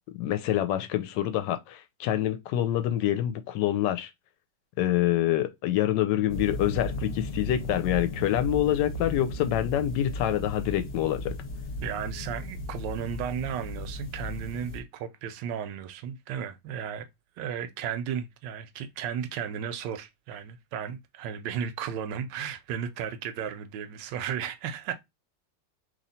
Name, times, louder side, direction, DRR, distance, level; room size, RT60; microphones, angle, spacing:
voice 1, 0.1-4.1 4.8-11.3, left 12 dB, 75° left, 1.2 m, -26 dB
sound 1, 6.3-14.8, left 1 dB, 45° left, 0.9 m, -36 dB
voice 2, 11.8-17.1 17.4-24.9, right 8 dB, 80° right, 1.2 m, -34 dB
3.0 x 2.8 x 4.1 m
omnidirectional pair, 2.0 m